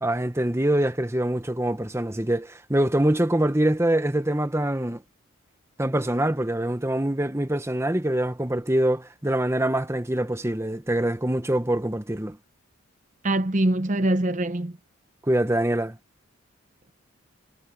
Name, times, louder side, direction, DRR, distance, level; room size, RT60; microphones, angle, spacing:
voice 1, 0.0-5.0 5.8-12.4 15.3-16.0, right 1 dB, 10° right, 0.9 m, -24 dB
voice 2, 13.2-14.7, right 1 dB, 35° right, 0.8 m, -23 dB
head